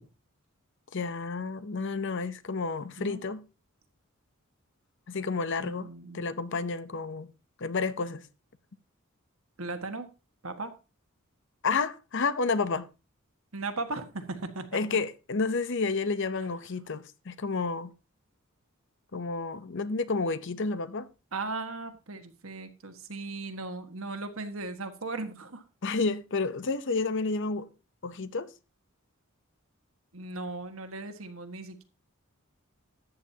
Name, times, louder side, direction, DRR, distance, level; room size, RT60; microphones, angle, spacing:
voice 1, 0.9-3.4 5.1-5.9 6.1-7.3 7.6-8.3 11.6-12.9 14.7-17.9 19.1-21.1 25.8-27.7 28.0-28.5, left 4 dB, 60° left, 0.7 m, -30 dB
voice 2, 5.6-6.3 9.6-10.1 10.4-10.7 13.5-15.0 21.3-25.6 30.1-31.8, right 3 dB, 70° right, 1.6 m, -37 dB
13.5 x 9.2 x 2.8 m
head